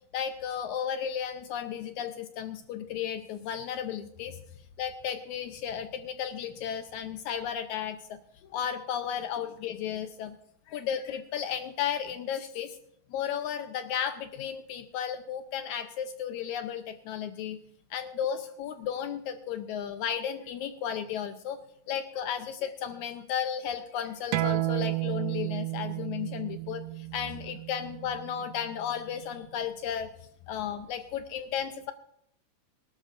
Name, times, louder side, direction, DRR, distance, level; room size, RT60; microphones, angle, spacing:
voice 1, 0.1-4.4 4.8-8.2 8.4-10.4 10.7-12.8 13.1-17.6 17.9-21.6 21.9-30.1 30.5-31.9, left 9 dB, 90° left, 8 dB, 1.6 m, -34 dB
sound 1, 24.3-29.5, right 17 dB, 80° right, 1.9 m, -33 dB
23.5 x 12.0 x 2.5 m, 0.73 s
omnidirectional pair, 4.2 m